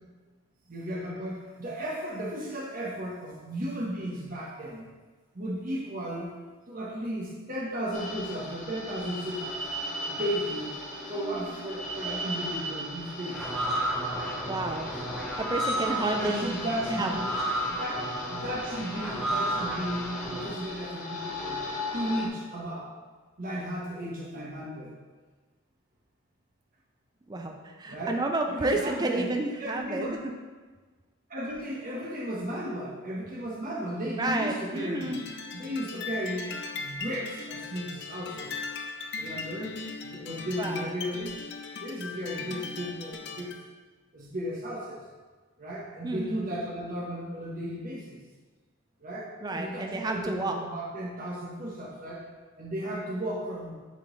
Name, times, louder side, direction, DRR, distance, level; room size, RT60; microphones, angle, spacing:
voice 1, 0.7-4.9 5.3-6.4 6.7-9.7 10.1-10.7 11.1-13.5 16.1-17.3 17.8-21.6 21.9-22.9 23.4-24.9 27.9-29.3 29.6-30.2 31.3-35.1 35.5-38.5 39.2-41.5 41.8-43.5 44.1-45.0 45.6-48.2 49.0-52.2 52.6-53.8, equal, 40° right, -4 dB, 1.1 m, -35 dB
sound 1, 7.9-22.3, left 1 dB, 35° left, 0.9 m, -38 dB
sound 2, 13.3-20.5, right 1 dB, ahead, 0.9 m, -32 dB
voice 2, 14.4-14.9 15.4-16.5 17.0-17.1 27.3-30.3 34.2-35.2 40.6-40.9 46.0-46.4 49.4-50.5, right 2 dB, 20° right, 3 dB, 0.4 m, -30 dB
sound 3, 34.8-43.6, left 4 dB, 50° left, 0.5 m, -39 dB
7.4 x 3.8 x 3.9 m, 1.4 s
head